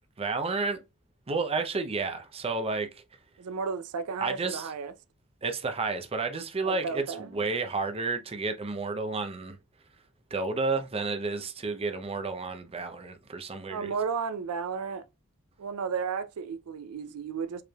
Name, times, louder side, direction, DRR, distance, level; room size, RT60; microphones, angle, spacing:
voice 1, 0.2-0.8 1.3-3.0 4.2-4.7 5.4-9.6 10.3-13.9, right 3 dB, 25° right, 0.5 m, -31 dB
voice 2, 3.4-4.9 6.6-7.5 13.7-15.1 15.6-17.6, right 5 dB, 90° right, 0.4 m, -33 dB
4.9 x 3.1 x 2.2 m
head